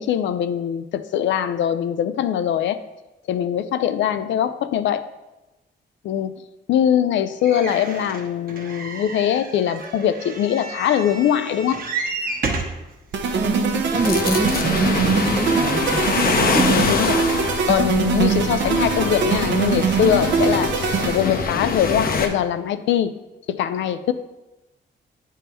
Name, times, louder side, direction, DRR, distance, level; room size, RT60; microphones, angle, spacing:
voice 1, 0.0-2.8 3.3-5.1 6.0-6.4 6.7-11.8 16.7-17.2 17.7-20.8 21.1-23.2 23.5-24.1, left 10 dB, 80° left, 12 dB, 0.4 m, -22 dB
sound 1, 7.4-12.8 13.5-13.6 13.9-14.0, right 3 dB, 50° right, 1.1 m, -31 dB
sound 2, 13.1-21.5, right 6 dB, 75° right, 0.7 m, -22 dB
voice 2, 13.3-16.0 16.4-16.7, right 1 dB, 10° right, 6 dB, 0.4 m, -24 dB
sound 3, 13.9-22.3, left 4 dB, 50° left, 0.7 m, -25 dB
8.3 x 3.6 x 4.3 m, 1.0 s
cardioid pair, 80°, 19 cm